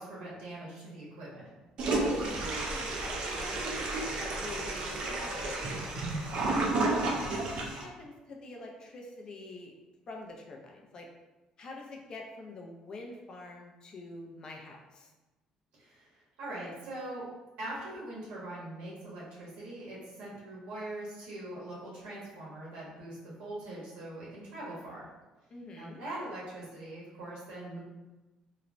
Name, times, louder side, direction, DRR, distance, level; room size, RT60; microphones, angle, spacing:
voice 1, 0.0-1.5 6.0-6.6 15.7-17.2 17.6-25.0 25.8-27.8, right 1 dB, 85° right, -6 dB, 1.1 m, -42 dB
Toilet flush, 1.8-7.8, right 2 dB, 50° right, 0.4 m, -31 dB
voice 2, 2.3-5.5 6.7-9.7 10.1-11.1 11.6-15.1 25.5-26.0, left 2 dB, 35° left, 0 dB, 0.4 m, -46 dB
3.0 x 2.0 x 2.5 m, 1.1 s
cardioid pair, 160°, 2 cm